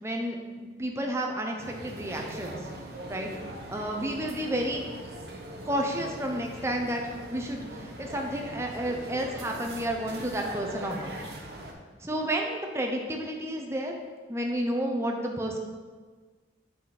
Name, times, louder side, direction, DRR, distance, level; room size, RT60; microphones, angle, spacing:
voice 1, 0.0-2.6 3.1-3.3 3.7-4.8 5.7-7.0 7.3-11.3 12.0-13.9 14.3-15.6, right 1 dB, 15° right, 1 dB, 0.7 m, -31 dB
sound 1, 1.6-11.7, right 1 dB, 60° right, 1.0 m, -41 dB
7.9 x 5.1 x 4.2 m, 1.4 s
head